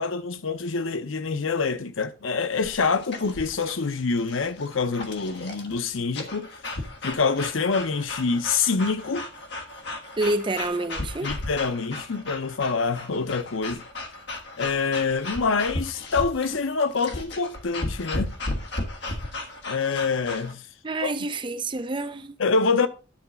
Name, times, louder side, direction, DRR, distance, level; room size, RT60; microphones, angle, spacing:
voice 1, 0.0-6.5 7.0-9.3 11.2-13.8 14.6-18.3 19.7-20.6 21.0-21.1 22.4-22.9, left 4 dB, 85° left, 0.7 m, -26 dB
sound 1, 2.5-20.5, left 2 dB, 60° left, 1.4 m, -35 dB
voice 2, 10.2-11.3 20.8-22.4, right 2 dB, 25° right, 0.5 m, -28 dB
10.0 x 4.0 x 5.5 m
head